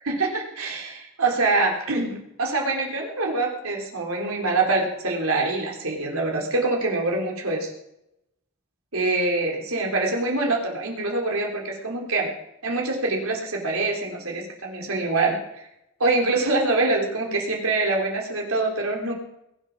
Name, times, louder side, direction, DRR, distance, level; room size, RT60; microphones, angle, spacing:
voice 1, 0.0-7.7 8.9-12.3 12.6-15.7 16.0-19.1, right 2 dB, 85° right, 0 dB, 3.7 m, -25 dB
21.0 x 8.6 x 6.2 m, 0.84 s
head